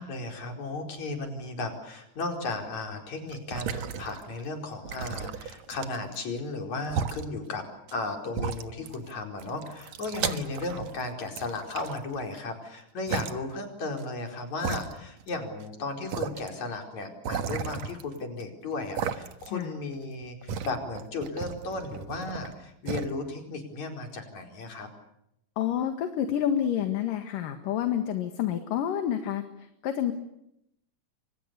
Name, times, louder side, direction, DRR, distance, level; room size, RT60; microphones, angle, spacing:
voice 1, 0.0-7.6 7.9-24.9, left 3 dB, 55° left, 4 dB, 5.9 m, -35 dB
sound 1, 3.3-4.4 4.9-6.2 6.8-7.2 7.9-8.0 8.3-9.1 9.4-11.0 11.4-12.4 13.1-13.3 14.0-14.1 14.6-15.4 15.6-15.7 16.1-16.5 17.2-18.4 19.0-19.6 19.9-22.5 22.9-23.1, right 7 dB, 60° right, 2.3 m, -34 dB
voice 2, 25.6-29.4 29.8-30.1, left 10 dB, 75° left, 7 dB, 3.4 m, -28 dB
29.5 x 25.5 x 6.9 m, 0.80 s
omnidirectional pair, 4.0 m